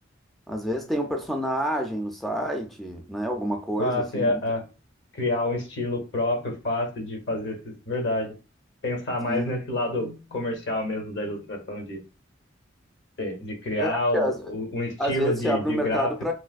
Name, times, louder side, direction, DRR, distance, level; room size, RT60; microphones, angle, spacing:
voice 1, 0.5-4.4 9.3-9.6 13.8-14.5 15.0-16.3, equal, ahead, 0.3 m, -28 dB
voice 2, 3.8-4.7 5.1-8.4 8.8-12.0 13.2-16.3, left 1 dB, 65° left, 1.0 m, -28 dB
3.1 x 2.8 x 2.4 m
head